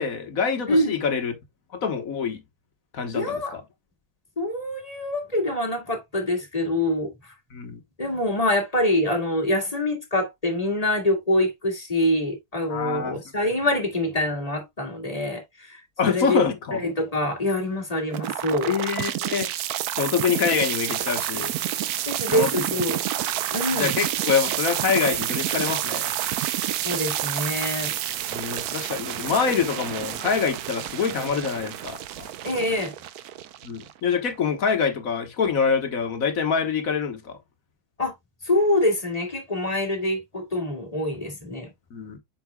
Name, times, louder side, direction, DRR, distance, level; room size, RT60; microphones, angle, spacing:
voice 1, 0.0-1.3 1.7-2.4 2.9-3.6 7.5-7.8 12.7-13.2 16.0-16.8 18.7-19.5 20.0-21.5 22.3-22.5 23.7-26.1 28.3-32.3 33.6-37.4 41.9-42.2, left 6 dB, 50° left, 1.3 m, -25 dB
voice 2, 3.1-3.6 4.4-7.1 8.0-18.7 22.1-23.0 23.5-23.9 26.8-28.0 32.4-32.9 38.0-38.1 38.4-41.7, left 1 dB, 20° left, 1.9 m, -25 dB
sound 1, 18.1-34.1, right 12 dB, 80° right, 0.8 m, -29 dB
7.5 x 5.8 x 2.2 m
omnidirectional pair, 2.2 m